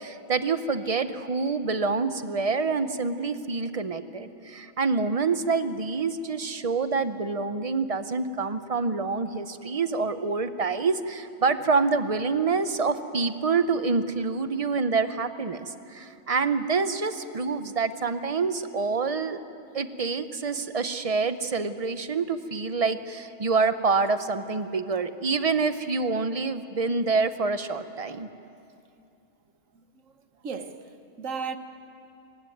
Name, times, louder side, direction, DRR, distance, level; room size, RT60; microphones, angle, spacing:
voice 1, 0.0-19.4 19.7-28.3, right 4 dB, 35° right, 0.7 m, -27 dB
voice 2, 29.7-31.6, right 5 dB, 70° right, 1.4 m, -37 dB
25.5 x 15.5 x 9.3 m
omnidirectional pair, 1.4 m